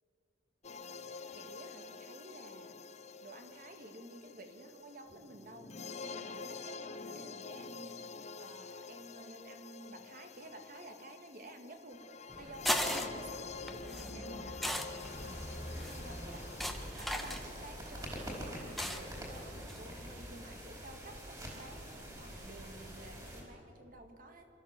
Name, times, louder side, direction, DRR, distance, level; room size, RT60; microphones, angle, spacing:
sound 1, 0.6-16.9, left 4 dB, 40° left, 0.6 m, -47 dB
voice 1, 1.3-2.8 3.2-5.7 6.0-8.0 8.4-14.6 15.2-16.6 17.0-24.5, right 1 dB, 50° right, 5 dB, 1.9 m, -52 dB
sound 2, 12.3-20.2, equal, ahead, 1.1 m, -40 dB
sound 3, 15.0-23.4, equal, 20° right, 4.7 m, -46 dB
26.0 x 13.5 x 7.7 m, 3.0 s
head